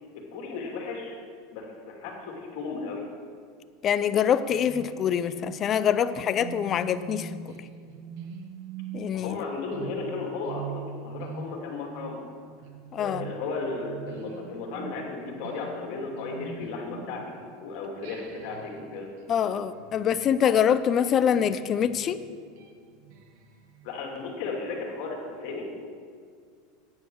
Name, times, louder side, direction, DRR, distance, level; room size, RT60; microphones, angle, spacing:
voice 1, 0.3-1.2 1.5-3.0 9.1-12.2 13.0-19.1 23.8-25.7, left 3 dB, 60° left, 1 dB, 2.7 m, -35 dB
voice 2, 3.8-7.6 8.9-9.4 12.9-13.3 19.3-22.2, left 8 dB, 40° left, 13 dB, 0.5 m, -25 dB
sound 1, 4.5-17.6 18.0-23.9, right 5 dB, 65° right, 1.4 m, -44 dB
9.6 x 9.3 x 6.4 m, 2.1 s
hypercardioid pair, 105°, 0 cm